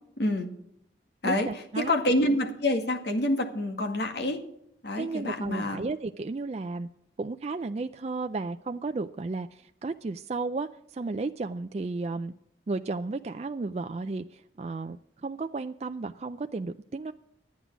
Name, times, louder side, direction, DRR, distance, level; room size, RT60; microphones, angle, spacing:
voice 1, 0.2-0.5 1.2-1.5 1.8-4.4 4.8-5.8, left 1 dB, 70° left, 3 dB, 2.0 m, -27 dB
voice 2, 1.2-1.9 5.0-6.9 7.2-12.3 12.7-17.1, right 3 dB, 35° right, 8 dB, 0.4 m, -33 dB
12.0 x 9.4 x 6.1 m, 0.75 s
head